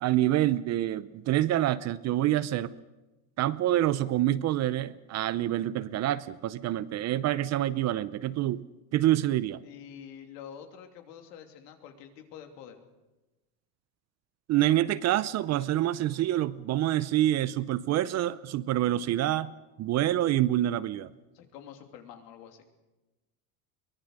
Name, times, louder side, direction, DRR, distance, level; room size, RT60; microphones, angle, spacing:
voice 1, 0.0-2.7 3.4-9.6 14.5-19.5 19.8-21.1, right 13 dB, 35° right, 17 dB, 0.6 m, -27 dB
voice 2, 9.6-12.9 21.3-22.7, left 8 dB, 75° left, 5 dB, 3.1 m, -47 dB
23.0 x 19.0 x 6.6 m, 1.1 s
supercardioid pair, 125°, 49 cm